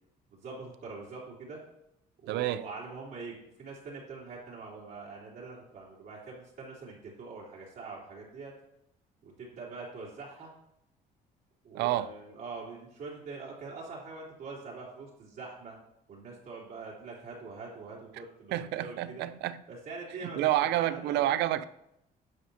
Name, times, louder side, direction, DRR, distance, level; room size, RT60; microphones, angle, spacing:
voice 1, 0.3-1.6 2.2-8.5 9.2-10.5 11.6-15.8 16.1-19.2 19.7-21.4, right 4 dB, 60° right, 3.4 m, -44 dB
voice 2, 2.3-2.6 11.7-12.1 18.5-19.6 20.2-21.6, right 13 dB, 80° right, 0.5 m, -29 dB
11.5 x 7.4 x 2.8 m
cardioid pair, 110°, 17 cm